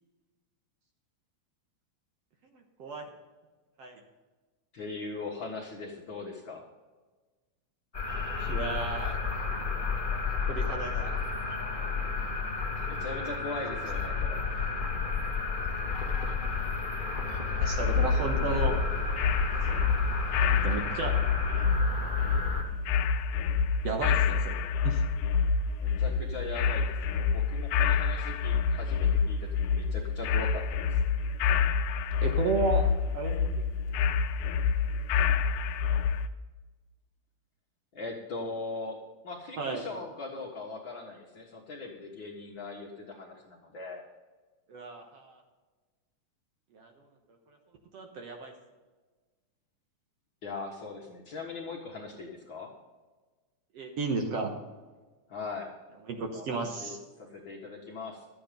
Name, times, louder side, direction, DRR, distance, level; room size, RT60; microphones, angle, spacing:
voice 1, 2.5-3.1 3.8-4.0 8.4-9.2 10.5-11.1 16.2-16.7 17.3-18.7 19.7-20.1 20.5-21.1 23.8-25.0 32.2-32.9 33.1-33.3 39.6-39.9 44.7-45.4 46.7-46.9 47.9-48.5 53.7-54.5 56.1-57.0, right 3 dB, 60° right, 3 dB, 2.0 m, -34 dB
voice 2, 4.7-6.6 12.9-14.4 25.8-30.6 37.9-44.0 50.4-52.7 55.3-55.7 56.3-58.3, left 3 dB, 50° left, -1 dB, 1.7 m, -40 dB
sound 1, 7.9-22.6, left 4 dB, 30° left, 0.8 m, -32 dB
sound 2, 17.6-36.3, left 6 dB, 85° left, 2.1 m, -27 dB
12.5 x 8.8 x 5.1 m, 1.3 s
omnidirectional pair, 3.6 m